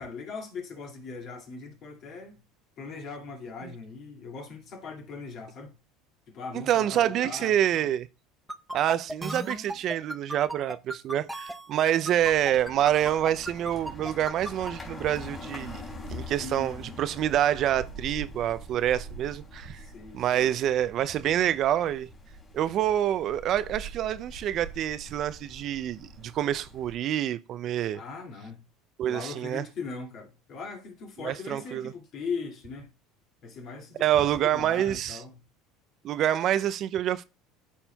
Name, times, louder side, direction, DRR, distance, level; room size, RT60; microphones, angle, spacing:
voice 1, 0.0-2.4 2.8-5.7 6.3-7.9 16.4-17.0 19.8-20.5 27.9-28.6 29.1-32.9 33.4-35.4, left 4 dB, 50° left, 2.1 m, -40 dB
voice 2, 6.7-8.1 8.7-15.8 16.1-19.8 20.1-22.1 22.5-28.0 29.0-29.6 31.2-31.9 34.0-35.2 36.0-37.2, right 11 dB, 50° right, 0.4 m, -27 dB
sound 1, 8.5-14.7, right 1 dB, ahead, 0.6 m, -35 dB
sound 2, 12.2-27.0, equal, 25° left, 2.5 m, -44 dB
12.5 x 4.3 x 2.2 m
supercardioid pair, 100°, 0 cm